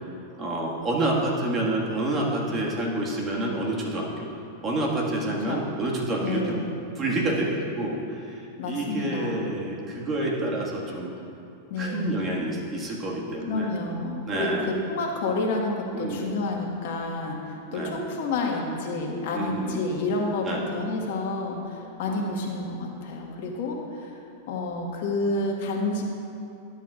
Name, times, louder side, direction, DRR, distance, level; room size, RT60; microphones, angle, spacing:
voice 1, 0.4-4.3 4.6-6.6 7.0-11.1 11.8-13.7 14.3-14.7 15.9-16.4 17.7-18.0 19.3-19.8 20.4-20.6 22.1-22.3, right 1 dB, 30° right, -3 dB, 1.8 m, -28 dB
voice 2, 6.2-6.7 8.6-9.5 11.7-12.2 13.5-24.1 24.5-26.0, left 2 dB, 65° left, 0 dB, 1.5 m, -29 dB
12.5 x 8.1 x 2.5 m, 2.7 s
hypercardioid pair, 110°, 0 cm